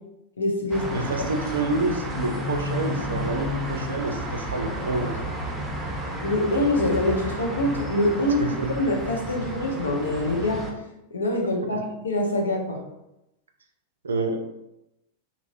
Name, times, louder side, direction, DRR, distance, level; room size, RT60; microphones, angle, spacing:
voice 1, 0.4-0.8 6.2-10.7 11.1-12.8, left 1 dB, 75° left, 1 dB, 0.6 m, -25 dB
sound 1, 0.7-10.7, equal, 10° right, 0.6 m, -32 dB
voice 2, 0.9-5.3 8.4-8.7 11.4-11.5 14.0-14.4, right 3 dB, 70° right, 4 dB, 0.4 m, -28 dB
2.9 x 2.9 x 2.5 m, 0.88 s
figure-of-eight pair, 90°, 0 cm